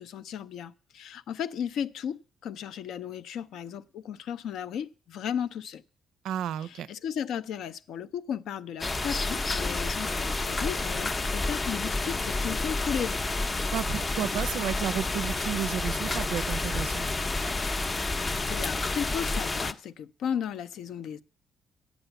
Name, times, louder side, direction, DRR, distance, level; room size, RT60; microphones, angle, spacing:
voice 1, 0.0-5.8 6.6-13.2 18.5-21.2, left 8 dB, 80° left, 0.5 m, -35 dB
voice 2, 6.2-6.9 13.7-17.1, right 9 dB, 85° right, 0.4 m, -32 dB
sound 1, 8.8-19.7, left 2 dB, 30° left, 0.5 m, -30 dB
9.0 x 7.2 x 7.9 m
cardioid pair, 90°, 0 cm